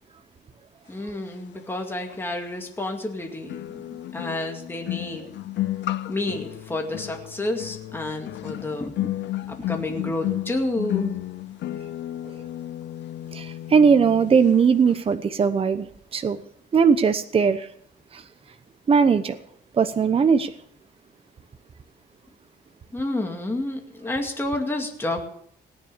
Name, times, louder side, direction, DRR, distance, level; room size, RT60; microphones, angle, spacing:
voice 1, 0.9-5.3 6.1-11.1 22.9-25.3, left 2 dB, 10° left, 2.3 m, -30 dB
sound 1, 2.1-2.2 3.5-14.6 14.8-15.1, left 15 dB, 80° left, 0.7 m, -32 dB
voice 2, 13.3-16.4 16.7-17.7 18.1-18.2 18.9-19.4 19.8-20.5, right 6 dB, 30° right, 0.9 m, -19 dB
17.5 x 9.9 x 6.9 m
cardioid pair, 145°, 18 cm